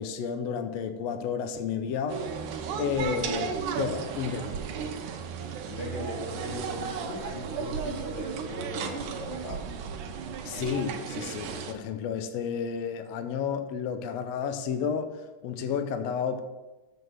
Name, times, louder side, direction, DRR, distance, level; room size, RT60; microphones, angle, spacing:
voice 1, 0.0-2.2 2.8-4.7 10.4-15.2 15.4-16.4, left 7 dB, 85° left, 7 dB, 1.5 m, -31 dB
sound 1, 2.1-11.7, right 6 dB, 75° right, 2.3 m, -34 dB
voice 2, 5.0-5.3 5.7-9.6, left 1 dB, 65° left, -3 dB, 4.1 m, -39 dB
7.1 x 6.4 x 6.3 m, 1.1 s
omnidirectional pair, 3.8 m